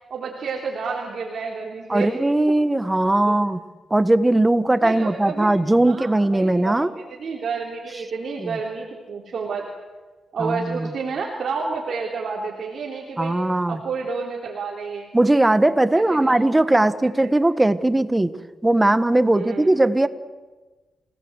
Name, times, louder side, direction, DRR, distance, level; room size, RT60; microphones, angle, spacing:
voice 1, 0.1-2.1 3.3-3.4 4.7-5.5 5.8-9.7 10.3-13.3 13.7-15.1 16.0-16.5 16.8-16.9 17.2-17.3 19.3-19.7, right 5 dB, 65° right, -1 dB, 3.6 m, -30 dB
voice 2, 1.9-3.6 3.9-6.9 8.4-8.6 10.4-10.9 13.2-13.8 15.1-18.3 18.6-20.1, right 1 dB, 15° right, 13 dB, 1.3 m, -19 dB
29.0 x 19.0 x 8.1 m, 1.3 s
cardioid pair, 80°, 0 cm